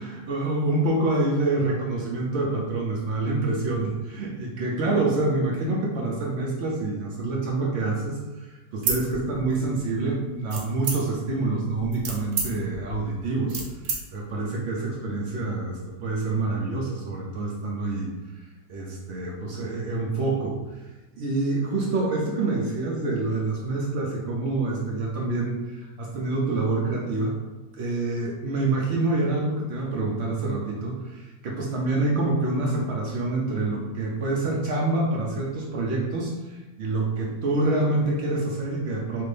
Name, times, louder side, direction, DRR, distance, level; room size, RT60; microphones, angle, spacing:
voice 1, 0.0-13.6 13.9-18.1 18.7-20.6 21.2-27.3 27.8-39.2, right 2 dB, 85° right, -3 dB, 0.5 m, -27 dB
sound 1, 8.7-9.8 10.5-11.3 11.8-14.0, right 4 dB, 70° right, 1.1 m, -30 dB
3.2 x 2.5 x 3.2 m, 1.1 s
omnidirectional pair, 1.8 m